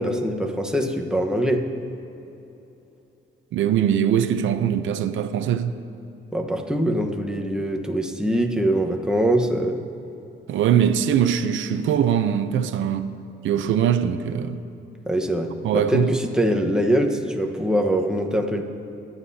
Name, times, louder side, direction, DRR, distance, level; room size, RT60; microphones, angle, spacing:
voice 1, 0.0-1.6 6.3-9.8 15.1-18.6, equal, 5° right, 1.2 m, -23 dB
voice 2, 3.5-5.8 10.5-13.1 13.4-14.6 15.6-16.1, right 9 dB, 75° right, 0.7 m, -21 dB
22.5 x 9.7 x 2.8 m
cardioid pair, 90°, 20 cm